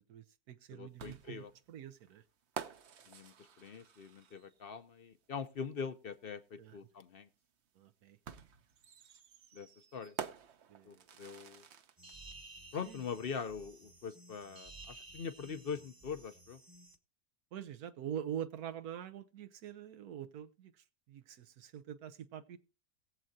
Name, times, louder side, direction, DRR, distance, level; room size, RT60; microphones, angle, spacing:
voice 1, 0.1-2.2 6.6-6.8 7.8-8.2 10.7-11.1 12.8-13.0 17.5-22.6, right 9 dB, 80° right, 1.2 m, -45 dB
voice 2, 0.7-1.5 3.1-7.3 9.5-10.1 10.9-11.6 12.7-16.6, left 6 dB, 50° left, 0.7 m, -43 dB
sound 1, 1.0-4.6 6.1-6.2 8.3-12.2, right 7 dB, 55° right, 1.0 m, -48 dB
sound 2, 12.0-17.0, right 2 dB, 15° right, 0.9 m, -55 dB
21.0 x 7.6 x 2.7 m
omnidirectional pair, 1.6 m